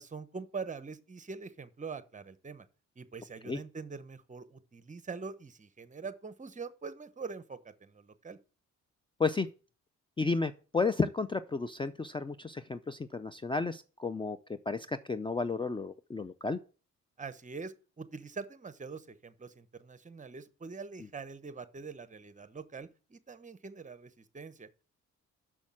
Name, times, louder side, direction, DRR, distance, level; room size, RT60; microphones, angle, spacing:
voice 1, 0.0-2.7 3.0-8.4 17.2-24.7, right 4 dB, 25° right, 0.9 m, -44 dB
voice 2, 10.2-16.6, left 4 dB, 15° left, 0.5 m, -32 dB
6.3 x 6.3 x 7.3 m
cardioid pair, 90°, 30 cm